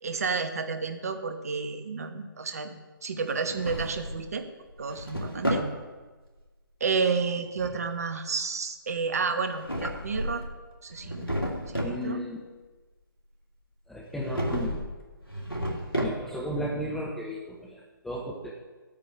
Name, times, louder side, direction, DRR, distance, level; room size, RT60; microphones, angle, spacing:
voice 1, 0.0-2.7 3.0-4.5 4.8-5.7 6.8-10.4 10.8-11.3 11.7-12.2, right 5 dB, 45° right, 8 dB, 1.0 m, -31 dB
Drawer open or close, 3.3-4.3 4.7-5.7 9.4-10.5 10.9-12.0 14.2-14.9 15.2-16.5, equal, 90° left, 2.4 m, -32 dB
voice 2, 11.8-12.4 13.9-14.8 16.0-18.5, equal, ahead, -2 dB, 0.4 m, -34 dB
13.0 x 8.7 x 3.5 m, 1.3 s
figure-of-eight pair, 140°, 12 cm